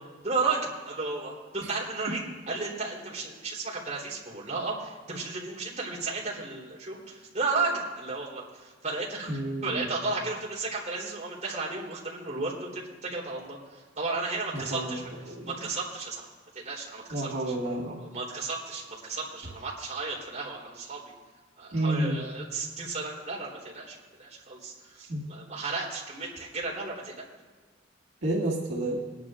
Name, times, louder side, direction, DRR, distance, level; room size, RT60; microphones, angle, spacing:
voice 1, 0.2-16.3 16.6-17.5 18.0-21.0 21.6-27.2, right 3 dB, 40° right, -5 dB, 3.5 m, -34 dB
voice 2, 9.3-9.9 14.5-15.0 15.3-15.5 17.1-18.0 21.7-22.2 25.1-25.2 28.2-29.0, right 1 dB, 70° right, -6 dB, 2.0 m, -30 dB
22.0 x 11.0 x 2.5 m, 1.4 s
head